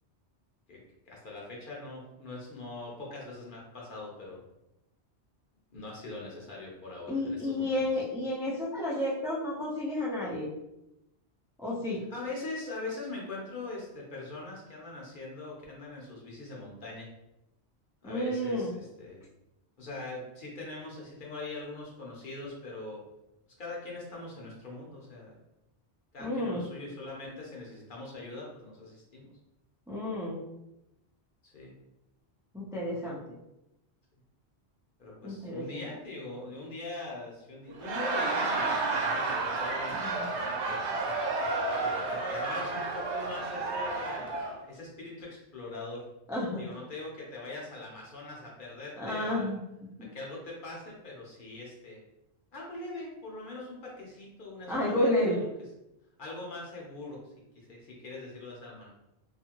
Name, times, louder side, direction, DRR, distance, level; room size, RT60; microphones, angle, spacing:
voice 1, 1.1-4.4 5.7-7.8 12.1-17.1 18.0-19.2 19.8-23.0 23.6-25.4 26.1-29.3 31.4-31.7 35.0-40.8 41.7-44.3 44.7-46.0 46.6-49.6 50.0-52.0 52.5-55.5 56.2-57.2 57.5-58.9, left 2 dB, 50° left, -3 dB, 0.8 m, -42 dB
voice 2, 7.1-10.5 11.6-12.0 18.0-18.7 26.2-26.6 29.9-30.4 32.5-33.2 35.2-35.8 40.2-40.3 46.3-46.6 49.0-50.1 54.7-55.4, left 1 dB, 5° right, -6 dB, 0.3 m, -31 dB
Laughter, 37.7-44.6, right 3 dB, 80° right, 0.9 m, -31 dB
2.7 x 2.5 x 2.8 m, 0.89 s
omnidirectional pair, 1.1 m